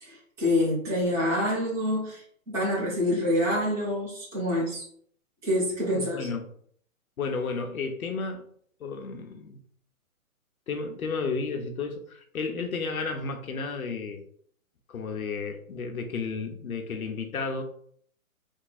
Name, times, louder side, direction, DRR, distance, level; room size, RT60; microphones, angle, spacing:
voice 1, 0.0-4.8 5.4-6.3, left 1 dB, 5° right, 0.9 m, -27 dB
voice 2, 5.9-6.5 7.2-8.5 8.8-9.6 10.7-14.3 14.9-17.6, left 4 dB, 80° left, 0.9 m, -32 dB
3.6 x 2.3 x 4.1 m
hypercardioid pair, 160°, 42 cm